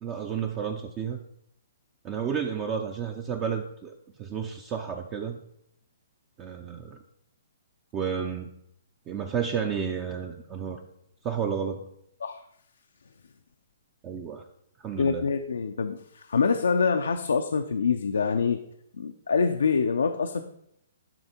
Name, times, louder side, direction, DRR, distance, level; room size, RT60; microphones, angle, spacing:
voice 1, 0.0-1.2 2.0-5.4 6.4-7.0 7.9-8.5 9.1-10.8 11.2-11.8 14.0-14.4 14.8-15.2, right 7 dB, 25° right, 5 dB, 0.5 m, -31 dB
voice 2, 15.0-18.6 18.9-20.4, left 5 dB, 85° left, 6 dB, 0.5 m, -25 dB
10.0 x 3.5 x 4.4 m, 0.75 s
hypercardioid pair, 140°, 0 cm